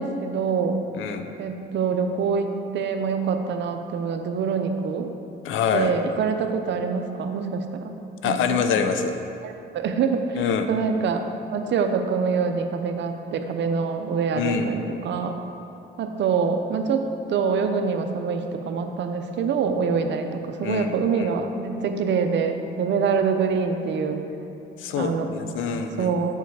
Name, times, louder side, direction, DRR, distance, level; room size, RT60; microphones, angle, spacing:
voice 1, 0.0-0.9 1.4-5.1 5.7-7.9 8.2-8.7 9.4-10.4 10.7-11.2 11.5-15.4 16.0-24.2 25.0-25.3 26.0-26.4, right 5 dB, 65° right, 6 dB, 0.6 m, -25 dB
voice 2, 5.4-5.9 8.2-9.1 10.4-10.7 14.4-14.7 20.6-21.3 24.8-26.1, left 6 dB, 85° left, 7 dB, 0.5 m, -25 dB
7.0 x 4.6 x 4.7 m, 2.7 s
cardioid pair, 90°, 20 cm